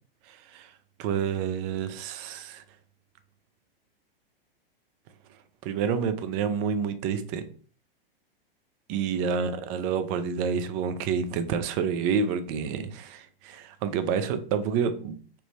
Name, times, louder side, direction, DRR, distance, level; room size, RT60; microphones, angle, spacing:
voice 1, 0.3-0.7 1.0-2.6 5.6-7.4 8.9-15.1, right 6 dB, 30° right, 10 dB, 0.4 m, -28 dB
3.3 x 2.0 x 4.0 m, 0.43 s
hypercardioid pair, 105°, 29 cm